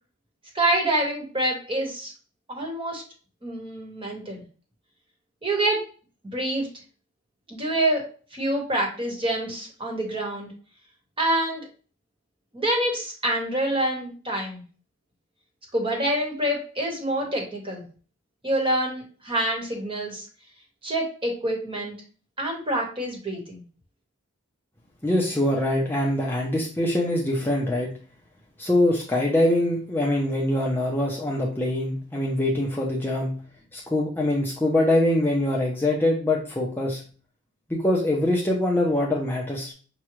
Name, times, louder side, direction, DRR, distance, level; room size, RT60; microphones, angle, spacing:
voice 1, 0.5-2.1 2.5-3.0 3.4-4.4 5.4-5.8 6.3-6.7 7.5-8.0 8.3-10.5 11.2-11.7 12.5-14.6 15.7-17.8 18.4-20.2 20.8-22.0 22.4-23.6, right 1 dB, 25° right, 1 dB, 1.2 m, -26 dB
voice 2, 25.0-27.9 28.6-33.3 33.7-37.0 37.7-39.7, left 1 dB, 10° left, -2 dB, 0.5 m, -23 dB
5.9 x 2.3 x 3.0 m, 0.39 s
head